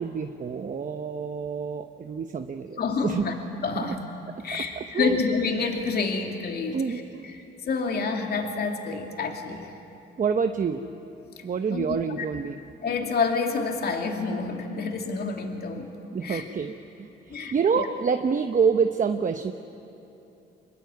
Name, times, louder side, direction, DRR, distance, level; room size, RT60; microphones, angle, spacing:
voice 1, 0.0-3.2 3.7-4.0 4.5-5.2 6.7-7.3 10.2-10.9 11.4-12.6 16.1-19.5, right 6 dB, 40° right, 7 dB, 1.0 m, -27 dB
voice 2, 2.8-4.0 4.4-6.8 7.3-9.7 11.4-11.5 11.7-12.0 12.8-15.9 16.2-16.5 17.3-17.8, left 4 dB, 55° left, 3 dB, 2.8 m, -28 dB
25.5 x 21.5 x 9.7 m, 2.9 s
cardioid pair, 90°, 20 cm